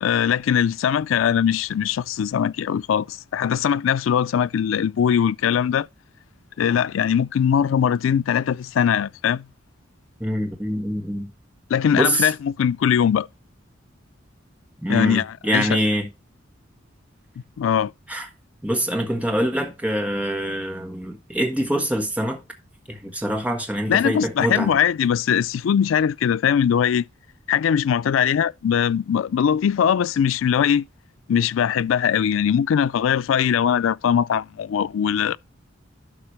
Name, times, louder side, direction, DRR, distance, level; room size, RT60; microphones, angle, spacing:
voice 1, 0.0-5.9 6.6-9.5 11.7-13.3 14.9-15.8 17.6-17.9 23.9-27.1 27.5-30.8 31.3-35.4, left 8 dB, 90° left, 0.3 m, -21 dB
voice 2, 10.2-11.3 11.9-12.3 14.8-16.1 18.1-18.3 18.6-22.4 22.9-24.7, equal, 5° right, 1.3 m, -24 dB
11.5 x 5.8 x 3.2 m
head